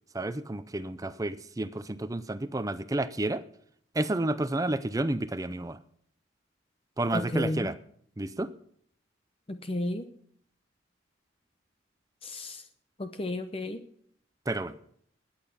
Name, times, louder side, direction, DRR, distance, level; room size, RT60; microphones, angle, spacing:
voice 1, 0.1-3.4 3.9-5.8 7.0-7.8 8.2-8.5 14.5-14.8, right 2 dB, 15° right, 13 dB, 0.5 m, -30 dB
voice 2, 7.1-7.7 9.5-10.1 12.2-12.6 13.0-13.8, left 1 dB, 30° left, 8 dB, 0.7 m, -32 dB
20.5 x 8.9 x 5.7 m, 0.65 s
head